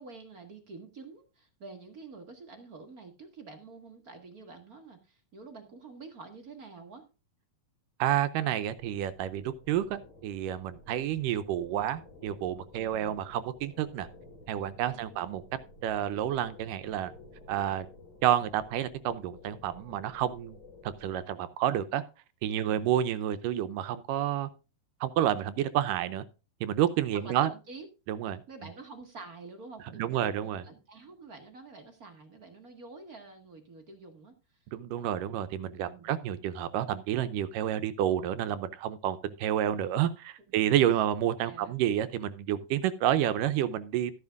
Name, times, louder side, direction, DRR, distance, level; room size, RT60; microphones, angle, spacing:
voice 1, 0.0-7.0 12.7-13.2 14.9-15.4 22.6-23.0 27.1-27.9 28.5-34.3 35.8-36.1 41.4-41.8, right 3 dB, 50° right, 6 dB, 1.1 m, -48 dB
voice 2, 8.0-14.1 14.5-15.4 15.8-17.1 17.5-17.9 18.2-20.6 20.8-22.0 22.4-24.5 25.0-26.2 26.6-27.5 28.1-28.4 30.0-30.6 34.7-44.1, right 11 dB, 80° right, 13 dB, 2.2 m, -29 dB
sound 1, 8.7-21.3, left 2 dB, 25° left, 2.4 m, -53 dB
14.0 x 11.0 x 2.4 m, 0.31 s
omnidirectional pair, 4.2 m